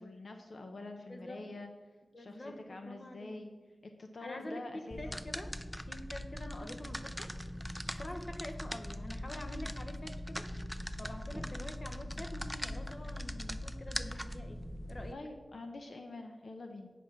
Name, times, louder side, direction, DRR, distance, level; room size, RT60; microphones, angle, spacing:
voice 1, 0.0-1.7 2.2-3.5 3.8-5.2 15.1-16.9, left 2 dB, 70° left, 5 dB, 0.8 m, -46 dB
voice 2, 1.1-1.4 2.1-3.4 4.2-5.6 5.9-7.3 8.0-10.6 11.0-14.6 14.9-15.2, left 1 dB, 40° left, 6 dB, 1.1 m, -46 dB
sound 1, 4.9-15.1, equal, 5° left, 0.5 m, -41 dB
9.6 x 5.0 x 7.3 m, 1.3 s
wide cardioid pair, 85°, 0 cm